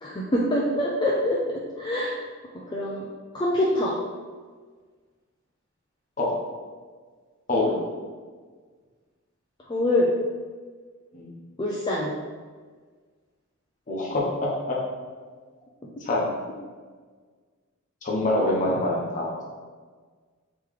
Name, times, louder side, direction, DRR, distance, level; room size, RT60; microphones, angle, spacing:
voice 1, 0.0-2.2 2.7-3.1 3.3-4.0 9.7-10.1 11.6-12.1, left 1 dB, 20° left, -4 dB, 0.3 m, -25 dB
voice 2, 7.5-7.8 11.1-11.4 13.9-14.8 16.0-16.4 18.0-19.4, left 1 dB, 35° left, -4 dB, 0.8 m, -25 dB
3.2 x 3.0 x 3.7 m, 1.5 s
head